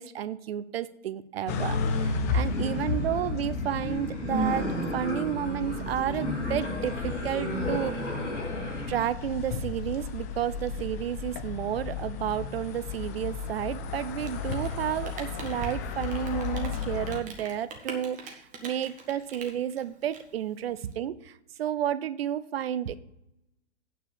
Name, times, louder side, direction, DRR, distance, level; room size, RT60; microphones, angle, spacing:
voice 1, 0.0-8.1 8.9-23.0, right 10 dB, 55° right, 16 dB, 0.6 m, -31 dB
sound 1, 1.5-17.2, left 5 dB, 15° left, 0.3 m, -34 dB
sound 2, 2.5-9.0, equal, 80° left, 3.0 m, -33 dB
Rain, 14.1-20.9, right 4 dB, 20° right, 1.6 m, -43 dB
9.1 x 4.8 x 7.1 m, 0.83 s
figure-of-eight pair, 110°, 36 cm